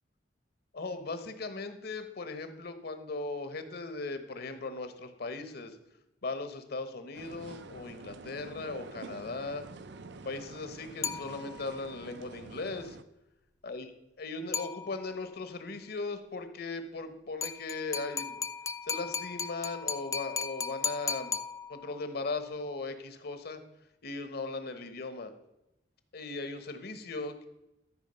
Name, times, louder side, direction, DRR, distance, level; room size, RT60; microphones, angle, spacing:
voice 1, 0.7-5.8 6.2-9.7 10.2-13.0 13.6-13.9 14.2-18.4 18.8-21.4 21.7-23.6 24.0-25.3 26.1-27.5, left 3 dB, 60° left, 9 dB, 1.2 m, -38 dB
sound 1, 7.1-13.0, right 3 dB, 65° right, 0.6 m, -47 dB
sound 2, 11.0-11.8 14.5-15.3 17.4-22.1, left 6 dB, 20° left, 0.3 m, -36 dB
13.0 x 4.7 x 6.8 m, 0.89 s
head